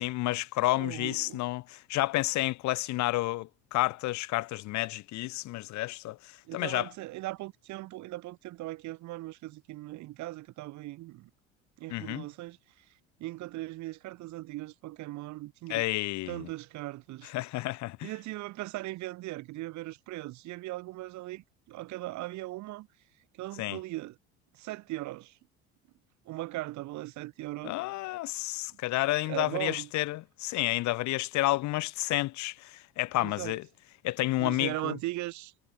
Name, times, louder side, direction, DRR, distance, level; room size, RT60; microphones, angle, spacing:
voice 1, 0.0-6.9 11.9-12.2 15.7-16.5 17.3-18.1 23.6-23.8 27.6-33.6 34.0-35.0, left 18 dB, 60° left, 3.5 m, -30 dB
voice 2, 0.8-1.4 6.5-11.3 11.8-12.8 13.2-15.8 16.3-17.3 18.0-22.9 23.3-24.2 24.5-25.4 26.2-27.8 29.3-29.9 33.2-33.6 34.4-35.5, right 18 dB, 65° right, 7.9 m, -39 dB
hypercardioid pair, 75°, 31 cm